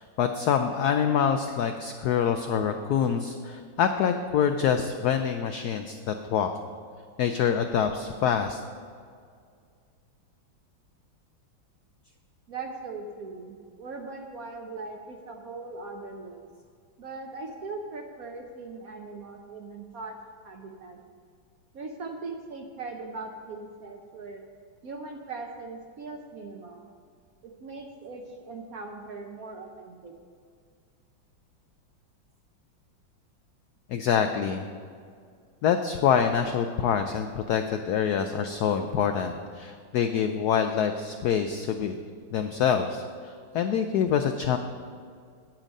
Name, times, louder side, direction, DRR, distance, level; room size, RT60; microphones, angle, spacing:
voice 1, 0.0-6.5 7.2-8.6 33.9-34.7 35.6-42.0 42.3-44.6, left 7 dB, 85° left, 7 dB, 0.8 m, -26 dB
voice 2, 12.5-16.5 17.0-20.2 20.4-21.0 21.7-24.4 24.8-26.9 27.4-30.1, right 3 dB, 60° right, 3 dB, 0.9 m, -40 dB
9.0 x 8.7 x 5.3 m, 2.2 s
omnidirectional pair, 2.2 m